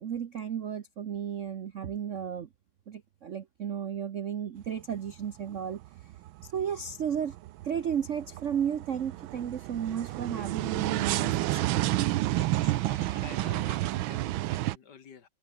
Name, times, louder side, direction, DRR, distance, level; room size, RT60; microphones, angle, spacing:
voice 1, 0.0-2.5 2.9-5.8 6.4-7.3 7.6-12.1, right 8 dB, 55° right, 0.8 m, -33 dB
sound 1, 4.6-5.2 5.6-14.8, right 16 dB, 80° right, 1.4 m, -30 dB
voice 2, 12.3-15.3, left 7 dB, 55° left, 2.1 m, -49 dB
omnidirectional pair, 2.3 m